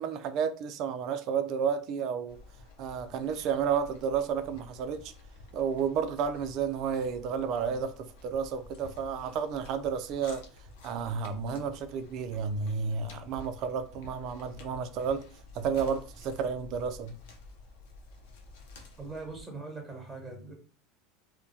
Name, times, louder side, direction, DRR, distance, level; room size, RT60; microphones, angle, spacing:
voice 1, 0.0-2.4 2.8-5.1 5.5-10.4 10.8-15.2 15.5-17.2, right 6 dB, 55° right, 0.4 m, -31 dB
sound 1, 2.3-19.4, left 2 dB, 75° left, 0.6 m, -51 dB
voice 2, 19.0-20.5, right 3 dB, 5° right, 1.2 m, -41 dB
2.2 x 2.1 x 2.7 m
hypercardioid pair, 100°, 0 cm